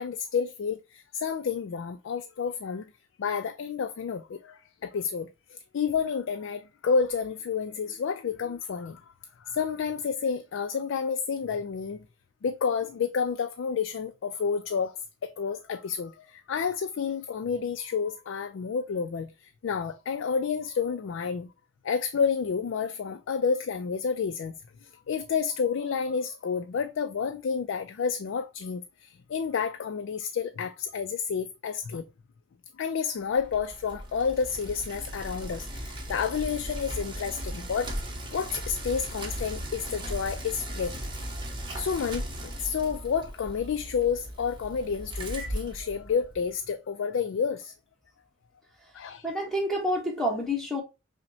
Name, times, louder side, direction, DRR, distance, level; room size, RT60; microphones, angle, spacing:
voice 1, 0.0-2.8 3.2-9.0 9.4-12.0 12.4-15.0 15.2-21.5 21.8-24.6 24.8-32.0 32.8-37.9 38.3-41.0 41.8-47.7 48.9-49.2, left 6 dB, 75° left, 0.4 m, -30 dB
Bicycle, 33.3-46.5, equal, 25° right, 0.7 m, -37 dB
voice 2, 49.2-50.8, equal, ahead, 1.1 m, -28 dB
5.6 x 2.1 x 2.7 m
head